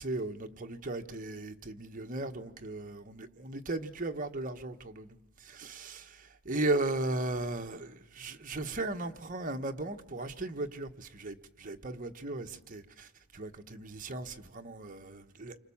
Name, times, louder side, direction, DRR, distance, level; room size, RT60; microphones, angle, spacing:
voice 1, 0.0-15.6, right 2 dB, 40° right, 1.3 m, -36 dB
29.0 x 25.0 x 7.2 m
head